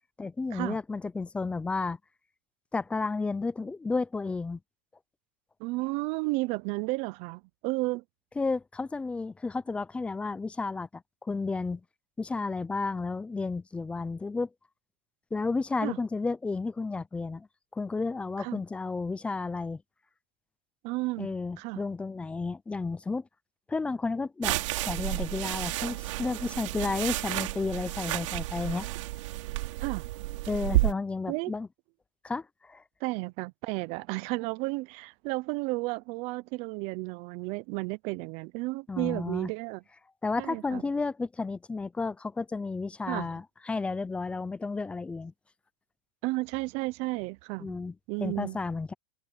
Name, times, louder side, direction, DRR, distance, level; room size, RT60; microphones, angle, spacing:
voice 1, 0.2-2.0 2.7-4.6 8.4-11.8 12.2-14.5 15.3-17.5 17.7-19.8 21.2-23.2 23.7-24.6 24.9-28.9 30.5-31.7 32.2-32.8 38.9-39.5 40.2-45.3 47.6-47.9 48.2-48.9, left 3 dB, 5° left, 0.5 m, -32 dB
voice 2, 5.6-8.0 15.8-16.0 18.4-18.6 20.8-21.8 29.8-30.0 31.3-31.5 33.0-39.8 40.4-40.8 43.1-43.3 46.2-47.8 48.1-48.6, right 23 dB, 40° right, 0.7 m, -33 dB
sound 1, 24.4-30.9, right 18 dB, 65° right, 2.8 m, -31 dB
supercardioid pair, 155°, 17 cm